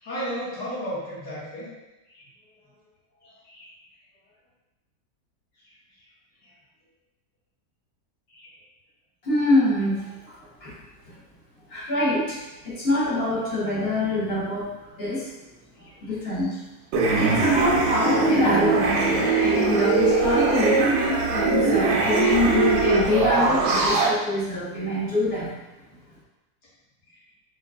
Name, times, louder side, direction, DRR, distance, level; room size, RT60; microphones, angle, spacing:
voice 1, 0.0-1.7 2.1-2.3 3.2-3.7 8.3-8.5 15.8-16.0 27.1-27.2, equal, 70° left, -9 dB, 2.0 m, -34 dB
voice 2, 9.2-10.4 10.6-10.7 11.7-14.7 15.0-15.3 16.0-16.6 17.1-19.0 19.4-25.5, left 2 dB, 40° left, -8 dB, 1.2 m, -25 dB
sound 1, 16.9-24.1, right 3 dB, 85° right, 1.2 m, -21 dB
4.3 x 3.1 x 2.3 m, 1.0 s
omnidirectional pair, 1.8 m